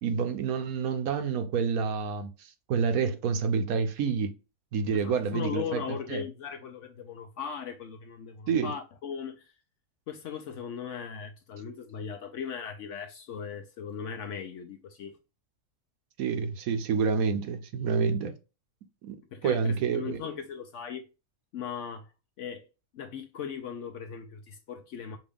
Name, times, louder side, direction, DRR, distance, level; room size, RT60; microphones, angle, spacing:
voice 1, 0.0-4.3 4.7-5.8 6.1-6.2 8.5-8.7 16.2-18.4 19.0-19.2 19.4-20.2, right 6 dB, 75° right, 1.1 m, -28 dB
voice 2, 4.9-9.5 10.1-15.2 19.3-21.0 21.5-22.1 22.4-22.6 22.9-25.2, left 7 dB, 65° left, 0.8 m, -38 dB
5.2 x 2.5 x 3.5 m
omnidirectional pair, 1.6 m